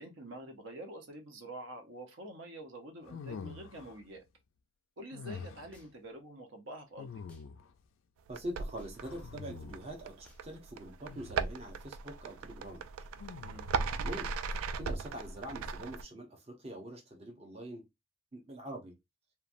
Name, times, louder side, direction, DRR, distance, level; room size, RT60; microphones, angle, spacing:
voice 1, 0.0-4.2 5.0-7.2 13.4-13.7, right 1 dB, 65° right, 0.7 m, -47 dB
sound 1, 3.1-4.0 5.1-5.8 7.0-7.8 9.0-10.0 11.1-11.6 13.2-13.9, left 5 dB, 70° left, 0.3 m, -46 dB
sound 2, 5.7-6.2 7.3-7.5 8.8-9.1 10.2-10.5, left 1 dB, 5° left, 0.5 m, -63 dB
voice 2, 8.3-12.8 14.0-17.9 18.3-18.9, right 1 dB, 30° right, 0.7 m, -44 dB
sound 3, 8.3-16.0, right 5 dB, 85° right, 0.3 m, -38 dB
3.0 x 2.3 x 2.5 m
head